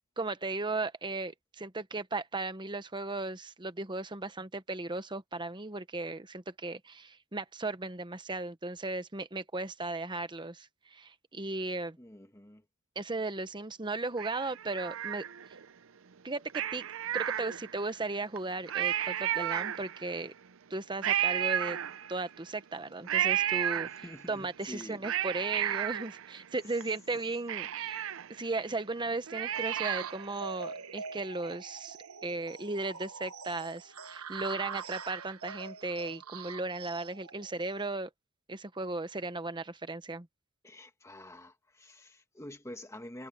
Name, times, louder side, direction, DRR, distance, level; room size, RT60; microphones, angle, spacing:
voice 1, 0.2-12.0 13.0-15.2 16.2-16.9 17.1-20.3 20.7-21.8 22.1-38.1 38.5-40.3, right 2 dB, 20° right, 1.0 m, -36 dB
voice 2, 12.0-12.6 23.8-25.0 40.6-43.3, left 1 dB, 15° left, 1.6 m, -47 dB
Cat, 14.2-15.7 16.5-17.9 18.4-18.5 18.7-20.2 21.0-22.4 23.1-24.3 24.8-26.8 27.1-27.2 27.5-30.3 30.6-30.7, right 11 dB, 65° right, 0.6 m, -33 dB
sound 1, 29.5-37.9, right 6 dB, 90° right, 1.3 m, -43 dB
head